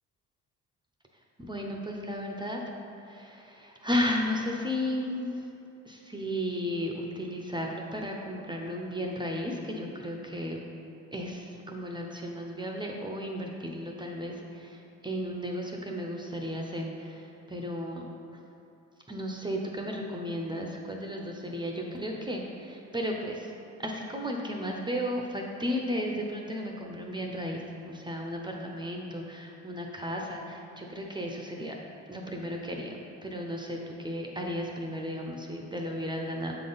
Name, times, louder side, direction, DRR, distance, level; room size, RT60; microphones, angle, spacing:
voice 1, 1.4-2.6 3.1-5.4 5.9-10.6 11.1-14.8 15.0-18.0 19.1-23.5 23.8-31.8 32.1-32.9 33.2-36.5, equal, 15° right, 0 dB, 0.6 m, -34 dB
7.0 x 3.8 x 3.9 m, 2.7 s
cardioid pair, 90°, 30 cm